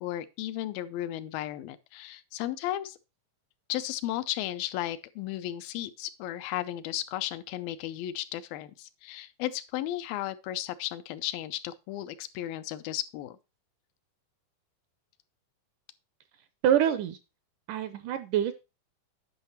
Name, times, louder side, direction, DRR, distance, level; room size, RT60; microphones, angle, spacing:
voice 1, 0.0-3.0 3.7-13.4, left 13 dB, 85° left, 2.4 m, -34 dB
voice 2, 16.6-17.2 17.7-18.5, right 10 dB, 80° right, 1.9 m, -25 dB
9.7 x 5.7 x 4.2 m
omnidirectional pair, 4.1 m